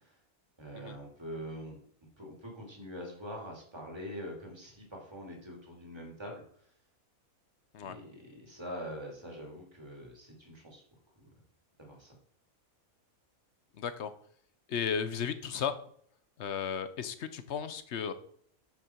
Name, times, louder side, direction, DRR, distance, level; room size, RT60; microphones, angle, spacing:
voice 1, 0.6-1.8 2.2-6.4 7.8-10.8 11.2-11.3 11.8-12.1, equal, 20° right, 0 dB, 2.7 m, -44 dB
voice 2, 13.8-14.1 14.7-15.7 16.4-18.1, left 7 dB, 55° left, 11 dB, 1.0 m, -34 dB
10.0 x 6.5 x 4.5 m, 0.62 s
omnidirectional pair, 1.5 m